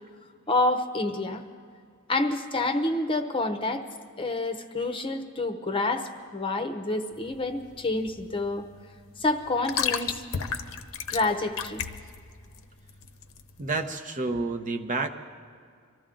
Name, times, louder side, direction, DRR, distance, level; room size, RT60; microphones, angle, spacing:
voice 1, 0.5-1.4 2.1-3.8 4.2-8.7 9.2-10.2 11.1-11.8, left 2 dB, 25° left, 6 dB, 0.8 m, -28 dB
sound 1, 7.1-13.8, left 7 dB, 65° left, 0.8 m, -34 dB
voice 2, 13.6-15.1, right 3 dB, 35° right, 5 dB, 0.8 m, -29 dB
24.0 x 14.0 x 3.8 m, 2.2 s
head